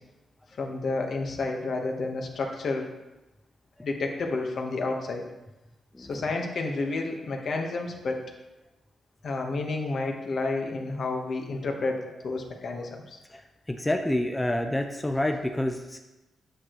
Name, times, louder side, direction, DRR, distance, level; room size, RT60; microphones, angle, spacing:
voice 1, 0.6-2.9 3.8-5.2 6.0-8.2 9.2-13.2, left 3 dB, 60° left, 2 dB, 1.2 m, -30 dB
voice 2, 13.7-16.0, left 1 dB, 10° left, 4 dB, 0.6 m, -28 dB
8.6 x 6.5 x 3.1 m, 1.0 s
cardioid pair, 90°, 0 cm